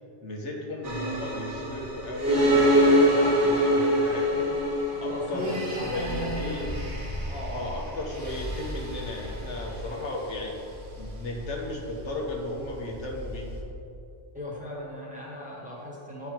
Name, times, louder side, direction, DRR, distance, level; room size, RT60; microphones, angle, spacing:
voice 1, 0.2-4.5 5.0-6.7 7.5-10.6 11.0-13.6, left 1 dB, 70° left, -1 dB, 1.4 m, -35 dB
sound 1, 0.8-13.6, equal, 45° right, 1.2 m, -26 dB
voice 2, 5.1-6.6 7.3-7.7 14.3-16.3, equal, 5° right, -5 dB, 1.5 m, -35 dB
10.0 x 4.7 x 4.5 m, 2.7 s
omnidirectional pair, 1.2 m